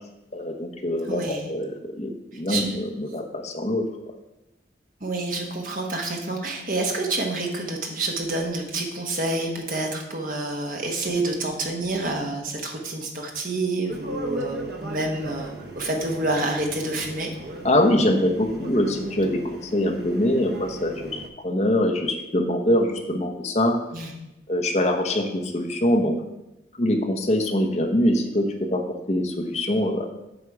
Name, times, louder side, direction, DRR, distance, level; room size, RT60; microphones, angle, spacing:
voice 1, 0.3-3.8 17.6-23.7 24.5-26.1 26.8-30.0, left 1 dB, 40° left, 4 dB, 0.9 m, -23 dB
voice 2, 1.1-1.5 2.3-2.8 5.0-17.3 23.9-24.1, right 2 dB, 50° right, 2 dB, 1.2 m, -28 dB
sound 1, 13.9-21.3, right 1 dB, 65° right, 0.9 m, -37 dB
8.0 x 5.2 x 4.7 m, 0.92 s
head